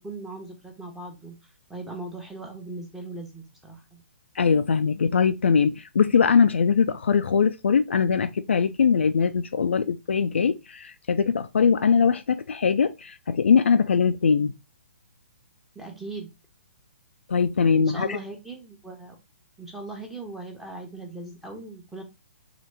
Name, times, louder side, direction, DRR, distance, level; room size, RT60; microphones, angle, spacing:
voice 1, 0.0-1.4 1.7-4.0 15.7-16.3 17.8-19.2 19.6-22.0, right 2 dB, 5° right, 0.9 m, -39 dB
voice 2, 4.4-14.5 17.3-18.2, left 6 dB, 65° left, 0.3 m, -21 dB
4.0 x 3.1 x 3.2 m
figure-of-eight pair, 125°, 7 cm